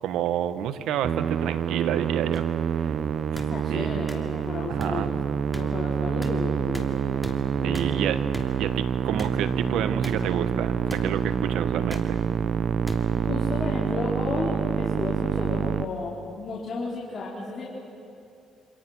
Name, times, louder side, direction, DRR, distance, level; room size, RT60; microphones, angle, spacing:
voice 1, 0.0-2.5 2.8-2.9 3.3-3.4 3.7-4.0 4.7-5.1 7.6-8.2 8.6-12.2, right 10 dB, 85° right, 12 dB, 1.1 m, -29 dB
Musical instrument, 1.0-15.9, right 7 dB, 60° right, 0.8 m, -27 dB
sound 1, 2.3-2.4 3.3-3.5 4.1-4.2 4.8-4.9 5.5-5.6 6.2-6.3 6.7-6.9 7.2-7.3 7.7-7.9 8.3-8.5 9.2-9.3 10.0-10.1 10.9-11.0 11.9-12.1 12.9-13.0 13.8-14.0, left 1 dB, 5° left, 2.7 m, -38 dB
voice 2, 3.3-5.2 5.5-7.3 7.6-8.0 13.2-17.6, left 3 dB, 40° left, -6 dB, 4.7 m, -33 dB
27.5 x 26.5 x 6.1 m, 2.6 s
cardioid pair, 90°, 0 cm